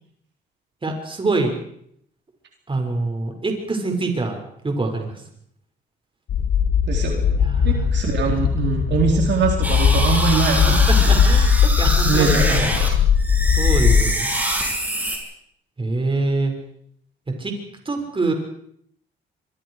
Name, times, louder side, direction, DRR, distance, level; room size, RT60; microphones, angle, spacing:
voice 1, 0.8-1.6 2.7-4.4 4.6-5.1 7.4-7.9 10.7-12.7 13.6-14.3 15.8-16.5 17.4-17.5 17.8-18.3, right 3 dB, 25° right, 3 dB, 6.2 m, -25 dB
sound 1, 6.3-14.0, left 7 dB, 75° left, 2.2 m, -19 dB
voice 2, 6.9-11.2 12.1-12.9, right 5 dB, 60° right, 1 dB, 4.4 m, -23 dB
sound 2, 9.6-12.9 13.2-15.2, right 1 dB, 10° right, 7.5 m, -25 dB
25.5 x 24.0 x 5.0 m, 0.70 s
cardioid pair, 90°, 20 cm